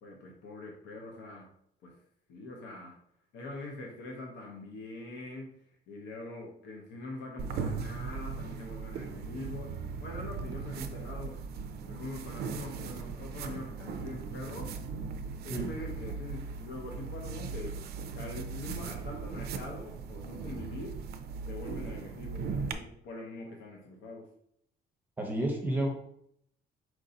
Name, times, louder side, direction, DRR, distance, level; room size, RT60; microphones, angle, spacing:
voice 1, 0.0-1.5 1.8-1.9 2.3-2.9 3.3-5.6 5.9-11.4 11.9-14.7 15.4-17.8 18.1-21.0 21.5-24.3, left 2 dB, 80° left, 1 dB, 0.8 m, -43 dB
sound 1, 7.4-22.7, right 5 dB, 60° right, 0.4 m, -38 dB
voice 2, 25.2-25.9, right 1 dB, 10° right, 1 dB, 0.7 m, -30 dB
4.6 x 2.6 x 3.9 m, 0.71 s
cardioid pair, 175°, 19 cm